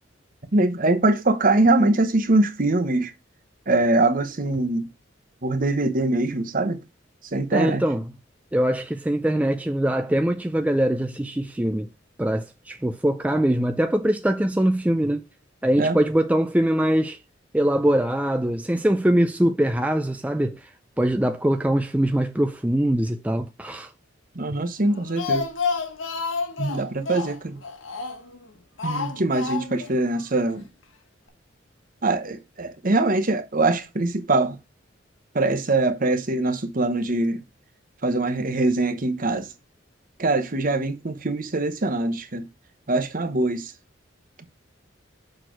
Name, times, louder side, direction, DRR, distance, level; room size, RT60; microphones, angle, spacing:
voice 1, 0.5-3.1 3.7-4.9 5.4-6.8 7.3-7.8 15.8-16.0 24.3-25.5 26.6-27.6 28.8-30.6 32.0-34.6 35.3-37.4 38.0-39.5 40.2-42.4 42.9-43.7, right 2 dB, 45° right, 1.0 m, -23 dB
voice 2, 7.5-8.0 8.5-11.9 12.2-15.2 15.6-17.2 17.5-20.7 21.0-23.9, right 1 dB, 5° right, 0.4 m, -22 dB
Speech, 24.8-28.4 28.8-29.9 30.2-30.3 30.6-30.7, left 4 dB, 75° left, 1.4 m, -29 dB
6.4 x 4.4 x 4.5 m
head